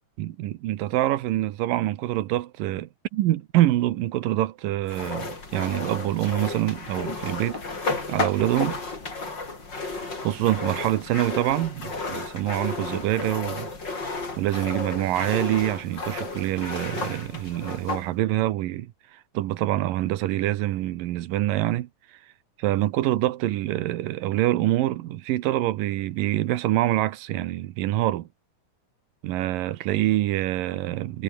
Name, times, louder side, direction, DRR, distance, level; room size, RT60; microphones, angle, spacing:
voice 1, 0.2-8.8 9.9-13.7 14.0-22.2 22.6-28.3 29.2-31.2, right 15 dB, 90° right, 2.8 m, -26 dB
sound 1, 4.9-18.1, left 3 dB, 30° left, 5.3 m, -33 dB
omnidirectional pair, 3.8 m